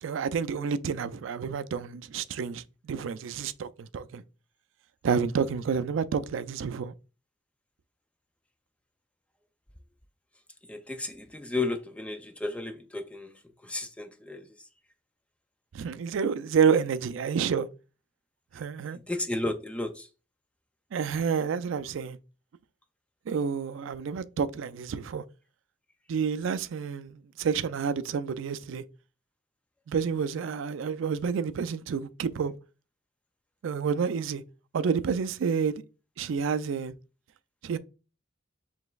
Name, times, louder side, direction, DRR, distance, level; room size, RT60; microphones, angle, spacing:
voice 1, 0.0-4.2 5.0-6.9 15.7-17.7 18.5-19.0 20.9-22.2 23.3-25.2 26.1-28.8 29.9-32.5 33.6-34.4 34.7-35.7 36.2-36.9 37.6-37.8, right 6 dB, 75° right, 0.4 m, -29 dB
voice 2, 10.6-14.7 18.9-20.1, left 2 dB, 5° left, 0.3 m, -34 dB
5.0 x 3.4 x 2.3 m
head